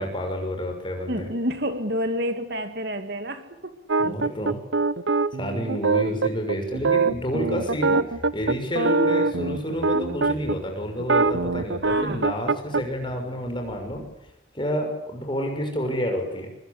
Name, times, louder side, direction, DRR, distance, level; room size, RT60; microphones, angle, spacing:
voice 1, 0.0-1.3 4.0-4.6 5.3-14.1 14.5-16.5, equal, 25° left, 3 dB, 6.3 m, -29 dB
voice 2, 1.1-3.7 11.8-12.2, equal, 55° right, 8 dB, 2.4 m, -29 dB
sound 1, 3.9-10.6 11.0-12.8, right 4 dB, 70° right, 0.9 m, -23 dB
sound 2, 6.8-14.1, left 1 dB, 70° left, 6.7 m, -46 dB
24.5 x 23.5 x 8.5 m, 0.83 s
head